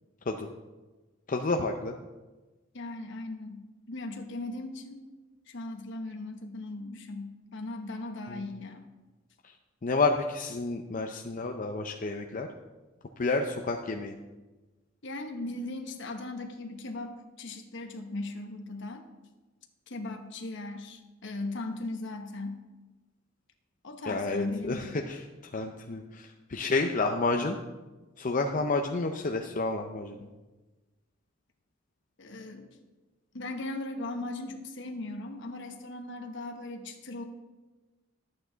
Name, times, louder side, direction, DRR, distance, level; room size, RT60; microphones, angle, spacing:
voice 1, 1.3-2.0 8.3-8.4 9.8-12.5 13.2-14.2 24.1-25.2 25.5-27.6 28.2-30.3, left 3 dB, 40° left, 3 dB, 0.6 m, -30 dB
voice 2, 2.7-5.0 5.5-8.8 11.4-11.5 15.0-19.1 19.9-22.6 23.8-24.9 32.2-32.7 33.3-37.3, left 2 dB, 65° left, 4 dB, 1.1 m, -38 dB
11.5 x 8.6 x 4.0 m, 1.2 s
head